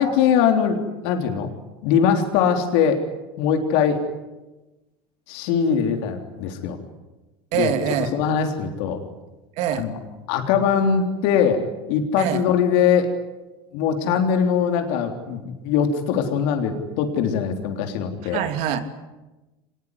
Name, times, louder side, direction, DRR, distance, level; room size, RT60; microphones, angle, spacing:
voice 1, 0.0-1.5 1.8-3.0 3.4-4.0 5.3-6.8 7.5-7.7 8.1-9.0 9.8-10.0 10.3-13.1 13.7-18.4, left 7 dB, 65° left, 4 dB, 3.5 m, -21 dB
voice 2, 7.5-8.2 9.6-9.9 12.2-12.4 18.2-18.8, right 10 dB, 60° right, 8 dB, 3.0 m, -24 dB
25.0 x 20.5 x 9.9 m, 1.1 s
hypercardioid pair, 95°, 13 cm